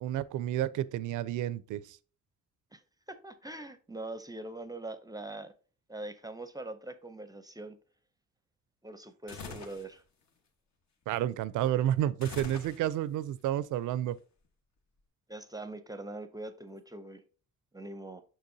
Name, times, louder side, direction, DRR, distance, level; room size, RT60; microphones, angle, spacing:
voice 1, 0.0-2.0 11.1-14.2, right 12 dB, 80° right, 0.5 m, -30 dB
voice 2, 3.1-5.5 5.9-7.8 8.8-10.0 15.3-17.2 17.7-18.2, right 2 dB, 15° right, 0.5 m, -42 dB
sound 1, 9.3-9.9 12.2-13.2, left 4 dB, 65° left, 1.3 m, -44 dB
6.8 x 6.0 x 2.7 m
cardioid pair, 90°, 30 cm